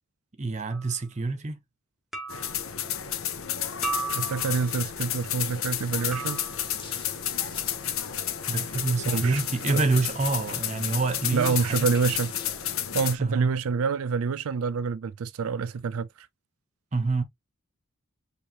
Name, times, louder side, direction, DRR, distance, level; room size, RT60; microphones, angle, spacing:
voice 1, 0.4-1.6 8.5-11.9 13.2-13.5 16.9-17.2, right 3 dB, 35° right, 0.9 m, -27 dB
sound 1, 0.7-1.0 2.1-2.7 3.8-4.7 6.1-6.8, right 3 dB, ahead, 1.3 m, -35 dB
sound 2, 2.3-13.1, left 10 dB, 75° left, 0.9 m, -31 dB
voice 2, 4.1-6.4 9.1-9.4 9.7-9.8 11.3-12.3 12.9-16.3, right 5 dB, 85° right, 0.4 m, -27 dB
sound 3, 5.2-12.8, left 3 dB, 25° left, 1.4 m, -48 dB
4.8 x 3.3 x 2.9 m
head